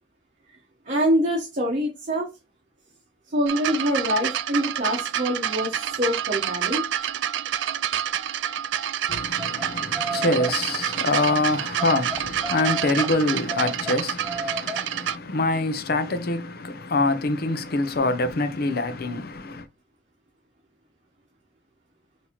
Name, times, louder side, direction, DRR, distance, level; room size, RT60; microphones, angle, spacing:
voice 1, 0.9-2.3 3.3-6.8, equal, 45° right, 1.1 m, -25 dB
sound 1, 3.5-15.2 16.1-16.2, right 10 dB, 85° right, 0.4 m, -28 dB
voice 2, 9.1-19.6, left 2 dB, 60° left, 0.7 m, -25 dB
Le chant de l'acethylene, 9.4-9.7 9.9-10.6 11.1-11.4 11.8-13.1 13.5-14.8, right 1 dB, 5° right, 0.5 m, -33 dB
5.5 x 2.8 x 3.0 m
head